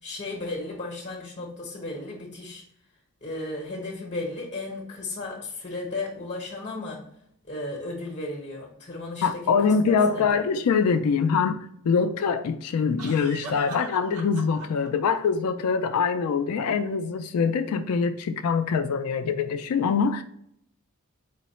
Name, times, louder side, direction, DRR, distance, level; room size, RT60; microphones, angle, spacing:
voice 1, 0.0-2.6 3.2-7.0 7.4-10.4, left 2 dB, 35° left, 1.0 m, -35 dB
voice 2, 9.2-20.2, left 5 dB, 85° left, 0.3 m, -24 dB
sound 1, 10.0-10.1 13.0-14.9, right 2 dB, 75° right, 0.8 m, -41 dB
4.5 x 2.0 x 4.1 m
head